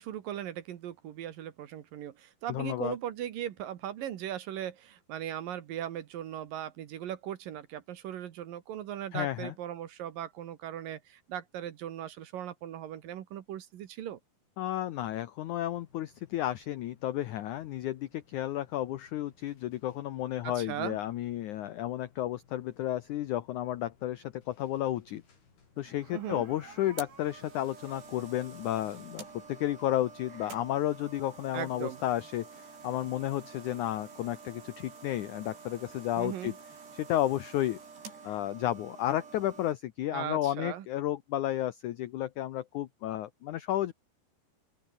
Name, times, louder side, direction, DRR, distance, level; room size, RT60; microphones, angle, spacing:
voice 1, 0.0-14.2 20.4-21.0 26.1-26.4 31.5-32.0 36.2-36.5 40.1-40.9, right 11 dB, 65° right, 2.8 m, -38 dB
voice 2, 2.5-3.0 9.1-9.5 14.6-25.2 25.8-36.6 36.9-37.8 38.2-43.9, left 13 dB, 90° left, 1.7 m, -32 dB
sound 1, 15.7-31.5, left 5 dB, 70° left, 8.4 m, -64 dB
sound 2, 25.8-39.7, right 5 dB, 80° right, 8.6 m, -49 dB
open air
omnidirectional pair, 4.8 m